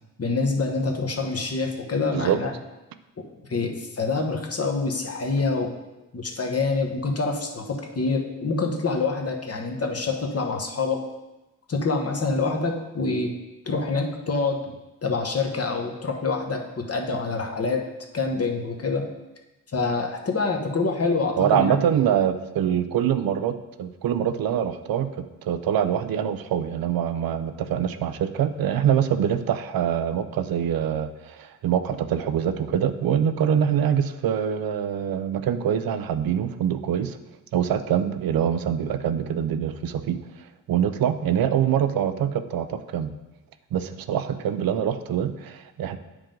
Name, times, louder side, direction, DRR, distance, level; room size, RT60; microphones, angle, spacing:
voice 1, 0.2-2.5 3.5-5.7 6.1-11.0 11.7-13.3 13.7-14.6 15.0-17.8 18.1-19.0 19.7-21.9, left 3 dB, 45° left, 2 dB, 1.2 m, -26 dB
voice 2, 21.4-37.2 37.5-40.2 40.7-43.1 43.7-46.0, right 9 dB, 90° right, 10 dB, 0.5 m, -24 dB
8.9 x 4.7 x 3.8 m, 1.0 s
cardioid pair, 70°, 34 cm